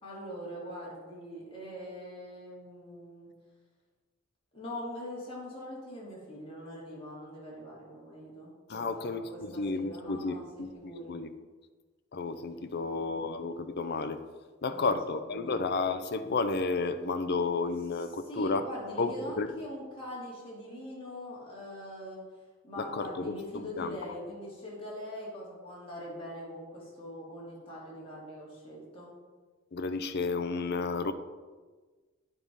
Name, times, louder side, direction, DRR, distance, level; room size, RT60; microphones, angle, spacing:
voice 1, 0.0-3.3 4.5-10.4 10.7-11.1 12.7-13.2 14.7-14.9 15.3-15.6 18.3-22.2 22.6-29.1, left 1 dB, 30° left, -6 dB, 3.0 m, -42 dB
voice 2, 8.7-11.3 12.1-14.2 14.6-18.7 19.0-19.6 22.8-24.0 29.7-31.1, left 3 dB, 55° left, 10 dB, 0.6 m, -32 dB
9.5 x 4.8 x 5.4 m, 1.4 s
head